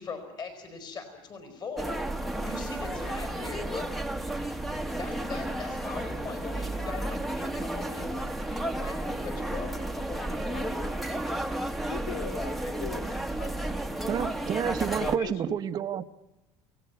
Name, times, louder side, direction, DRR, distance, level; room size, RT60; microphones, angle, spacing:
voice 1, 0.0-2.0 2.4-4.0 5.0-8.1 8.8-10.7, left 4 dB, 35° left, 8 dB, 4.6 m, -40 dB
sound 1, 1.8-15.2, right 1 dB, ahead, 1.2 m, -32 dB
voice 2, 11.1-13.8 14.9-15.6, left 7 dB, 80° left, 10 dB, 3.3 m, -41 dB
voice 3, 14.0-16.0, right 9 dB, 35° right, 9 dB, 0.9 m, -29 dB
28.5 x 18.0 x 9.5 m, 1.0 s
cardioid pair, 140°, 12 cm